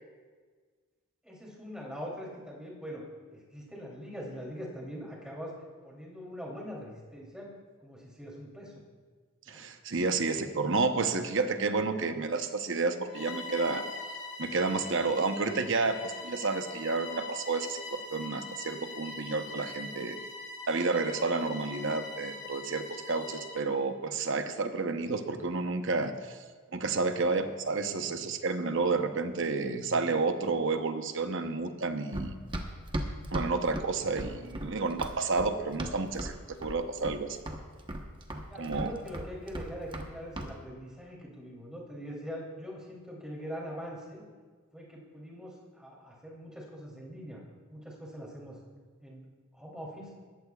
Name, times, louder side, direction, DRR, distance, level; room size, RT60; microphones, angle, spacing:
voice 1, 1.2-3.0 3.3-5.5 5.8-7.5 7.8-8.8 9.4-9.6 38.5-44.2 44.7-47.4 47.7-48.6 49.0-49.3 49.5-50.1, equal, 5° right, -4 dB, 3.1 m, -42 dB
voice 2, 9.5-13.8 14.4-17.8 18.1-20.2 20.7-26.4 26.7-32.3 33.3-37.4 38.6-38.9, right 3 dB, 60° right, 7 dB, 0.9 m, -30 dB
Bowed string instrument, 13.1-23.7, left 3 dB, 55° left, 2.0 m, -42 dB
Run, 32.1-36.4 36.6-37.2 37.5-40.1 40.3-40.5, right 1 dB, 25° right, 1.0 m, -36 dB
20.0 x 15.0 x 2.4 m, 1.5 s
head